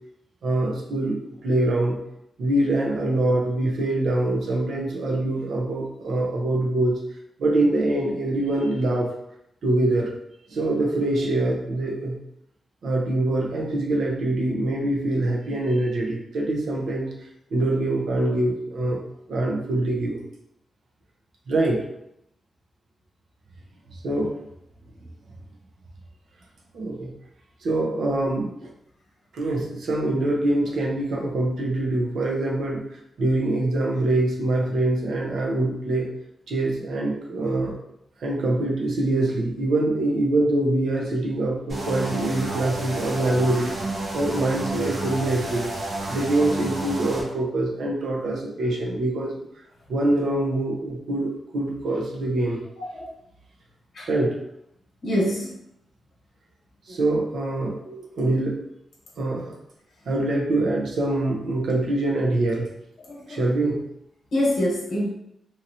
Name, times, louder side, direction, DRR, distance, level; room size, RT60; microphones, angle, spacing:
voice 1, 0.4-2.0 2.4-7.0 7.4-9.1 9.6-10.1 10.5-12.2 12.8-17.1 17.5-19.0 19.3-20.2 21.5-21.8 24.0-24.3 26.7-27.1 27.6-28.7 29.3-32.8 33.2-36.1 36.5-37.8 38.2-43.8 44.1-45.7 46.1-49.3 49.9-52.6 54.1-54.4 56.9-58.6 59.2-59.5 60.1-62.7 63.3-63.8, right 2 dB, 80° right, -1 dB, 0.7 m, -24 dB
sound 1, 41.7-47.2, right 2 dB, 60° right, 1.1 m, -30 dB
voice 2, 52.8-53.1 53.9-54.1 55.0-55.5 63.1-63.4 64.3-65.1, left 1 dB, 60° left, -4 dB, 1.1 m, -25 dB
2.9 x 2.8 x 2.6 m, 0.78 s
wide cardioid pair, 150°, 0 cm